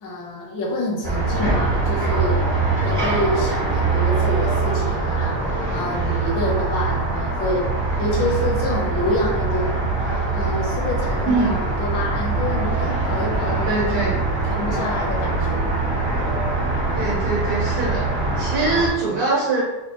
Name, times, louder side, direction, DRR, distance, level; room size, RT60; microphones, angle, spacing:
voice 1, 0.0-2.4 2.8-7.7 8.0-9.8 10.3-14.1 14.5-15.7, left 1 dB, 65° left, -2 dB, 1.5 m, -27 dB
sound 1, 1.0-18.9, right 3 dB, 30° right, 0.5 m, -23 dB
voice 2, 11.2-11.6 13.7-14.2 16.9-18.0 18.4-19.6, right 3 dB, 90° right, -7 dB, 1.9 m, -23 dB
4.4 x 2.3 x 2.9 m, 1.0 s
omnidirectional pair, 2.2 m